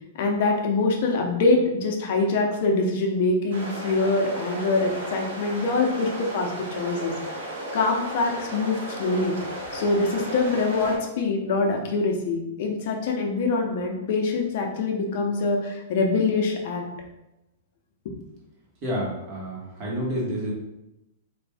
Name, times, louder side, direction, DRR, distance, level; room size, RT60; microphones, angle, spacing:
voice 1, 0.1-7.2 7.7-9.3 9.7-16.8 18.0-18.1, left 3 dB, 55° left, 2 dB, 0.7 m, -24 dB
sound 1, 3.5-11.0, right 1 dB, 70° right, 1.1 m, -35 dB
voice 2, 18.8-20.5, equal, 35° right, -3 dB, 1.2 m, -29 dB
3.3 x 2.6 x 3.4 m, 0.92 s
hypercardioid pair, 140°, 0 cm